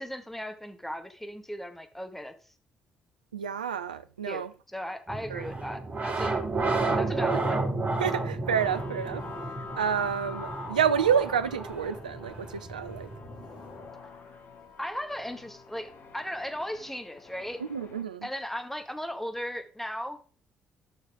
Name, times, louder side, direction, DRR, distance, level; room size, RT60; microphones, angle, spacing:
voice 1, 0.0-2.3 4.2-4.5 4.7-6.3 7.0-7.6 14.8-17.6 18.2-20.2, equal, 5° left, 1.7 m, -37 dB
voice 2, 3.3-4.5 5.3-5.4 8.0-9.2 9.8-13.1 17.7-18.3, right 7 dB, 85° right, 0.4 m, -29 dB
sound 1, 5.1-13.8, right 3 dB, 40° right, 4.0 m, -32 dB
sound 2, 8.5-18.0, left 5 dB, 55° left, 1.7 m, -46 dB
12.0 x 6.5 x 3.7 m
figure-of-eight pair, 45°, 4 cm